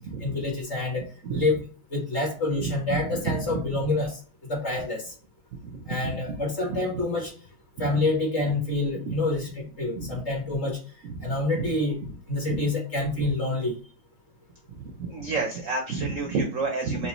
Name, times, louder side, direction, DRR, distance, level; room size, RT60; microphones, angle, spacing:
voice 1, 0.2-1.6 1.9-4.2 4.5-5.1 5.9-7.3 7.8-10.8 11.2-12.0 12.3-13.8, left 2 dB, 40° left, 1.5 m, -27 dB
voice 2, 2.9-3.6 5.7-5.9 6.7-6.8 9.1-9.2 10.0-10.1 11.0-11.6 12.5-12.6 14.7-17.1, right 4 dB, 65° right, 0.8 m, -30 dB
4.6 x 2.6 x 2.9 m
omnidirectional pair, 2.1 m